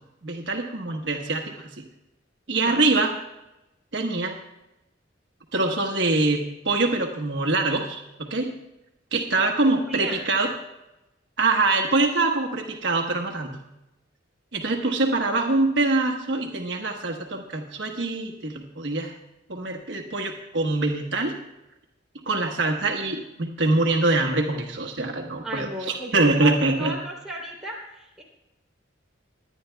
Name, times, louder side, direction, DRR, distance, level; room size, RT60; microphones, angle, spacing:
voice 1, 0.2-1.7 2.5-3.1 3.9-4.3 5.5-8.5 9.1-10.5 11.4-13.6 14.5-19.1 19.5-21.3 22.3-27.0, right 2 dB, 65° right, 2 dB, 1.2 m, -24 dB
voice 2, 9.6-10.2 14.7-15.0 25.4-26.5 26.8-28.2, equal, 5° right, -4 dB, 3.0 m, -35 dB
23.5 x 10.0 x 2.3 m, 0.94 s
head